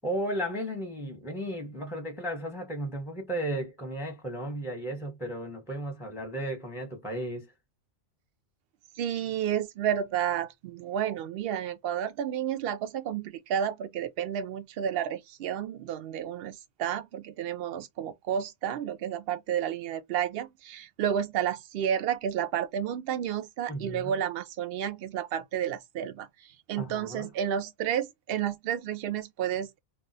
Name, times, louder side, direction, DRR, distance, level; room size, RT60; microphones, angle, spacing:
voice 1, 0.0-7.5 23.7-24.1 26.8-27.3, right 1 dB, 5° right, 0.7 m, -34 dB
voice 2, 9.0-29.8, right 9 dB, 65° right, 0.7 m, -31 dB
2.4 x 2.3 x 3.9 m
omnidirectional pair, 1.3 m